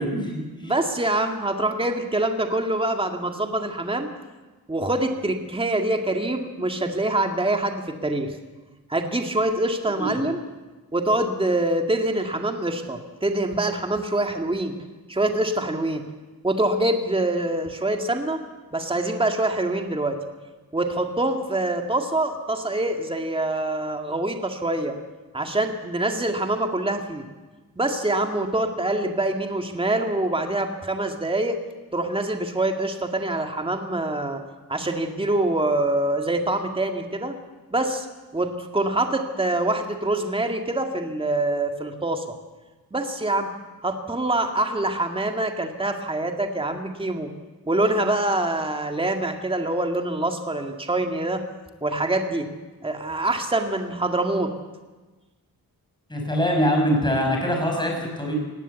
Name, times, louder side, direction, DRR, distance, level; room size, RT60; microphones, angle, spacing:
voice 1, 0.0-0.7 9.9-10.2 56.1-58.3, equal, 10° left, 1 dB, 6.7 m, -24 dB
voice 2, 0.6-4.1 4.7-8.4 8.9-10.4 10.9-14.7 15.1-16.0 16.4-18.4 18.7-20.2 20.7-24.9 25.3-27.2 27.8-31.6 31.9-34.4 34.7-37.4 37.7-38.1 38.3-42.2 42.9-43.5 43.8-47.3 47.7-51.4 51.8-52.5 52.8-54.5, right 2 dB, 15° right, 4 dB, 2.0 m, -25 dB
19.5 x 17.0 x 8.2 m, 1.2 s
cardioid pair, 90°, 37 cm